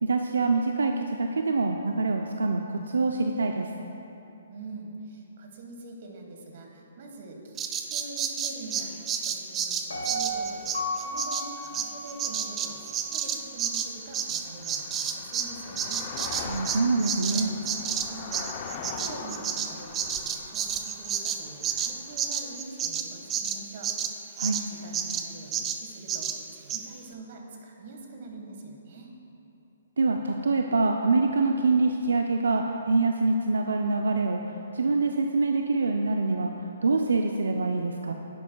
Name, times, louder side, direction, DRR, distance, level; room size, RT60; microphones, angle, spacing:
voice 1, 0.0-3.7 16.4-17.5 24.4-24.6 30.0-38.1, right 3 dB, 85° right, 4 dB, 0.5 m, -25 dB
voice 2, 4.5-7.6 7.9-16.1 16.9-23.9 24.2-29.1, right 2 dB, 50° right, 2 dB, 1.5 m, -44 dB
Bird vocalization bird call bird song, 7.6-15.5 15.8-24.7 24.9-25.3 25.5-25.8 26.1-26.4 26.7-26.8, right 8 dB, 20° right, 0.5 m, -30 dB
Piano, 9.9-13.0 13.4-13.5, equal, 85° left, 1.8 m, -34 dB
sound 1, 12.5-22.6, left 6 dB, 35° left, 0.6 m, -42 dB
10.5 x 10.5 x 2.3 m, 2.9 s
hypercardioid pair, 145°, 0 cm